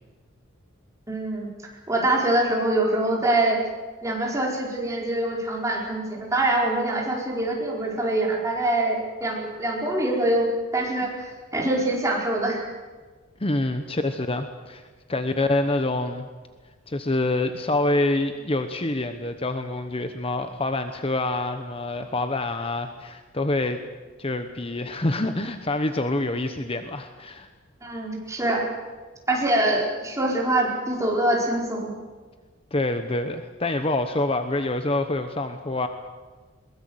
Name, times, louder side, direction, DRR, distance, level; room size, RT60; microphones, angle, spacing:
voice 1, 1.1-1.5 1.9-3.6 4.0-12.6 27.8-28.6 29.3-31.9, right 1 dB, 15° right, -2 dB, 4.7 m, -24 dB
voice 2, 13.4-16.3 16.9-23.8 24.2-27.5 32.7-35.9, left 2 dB, 30° left, 8 dB, 1.0 m, -26 dB
22.0 x 20.0 x 7.9 m, 1.4 s
head